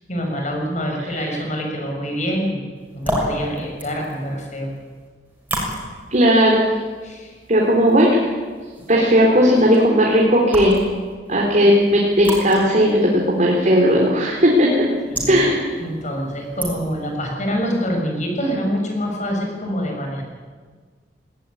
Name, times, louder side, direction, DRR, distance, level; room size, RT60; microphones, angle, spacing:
voice 1, 0.1-2.6 2.9-4.7 7.0-7.4 15.1-15.5 15.8-20.2, equal, 45° left, 1 dB, 6.5 m, -25 dB
voice 2, 1.0-1.4 6.1-6.6 7.5-8.2 8.9-10.8 11.3-14.7 15.3-15.7, equal, 45° right, -2 dB, 3.7 m, -16 dB
sound 1, 2.8-17.2, equal, 10° right, 6.6 m, -33 dB
19.5 x 18.5 x 9.9 m, 1.5 s
head